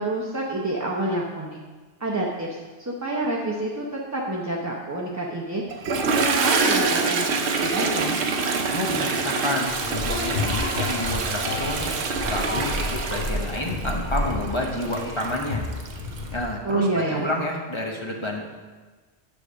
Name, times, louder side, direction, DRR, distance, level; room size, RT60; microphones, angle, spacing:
voice 1, 0.0-1.6 2.0-2.5 2.8-5.6 5.9-8.2 16.6-17.3, right 2 dB, 20° right, -3 dB, 0.6 m, -28 dB
Toilet flush, 5.7-16.3, right 4 dB, 90° right, 1.0 m, -26 dB
voice 2, 8.7-11.9 12.3-15.7 16.3-18.4, left 1 dB, 30° left, 0 dB, 0.8 m, -29 dB
sound 1, 9.6-16.4, left 2 dB, 55° left, 1.3 m, -30 dB
9.1 x 3.5 x 6.2 m, 1.3 s
omnidirectional pair, 1.1 m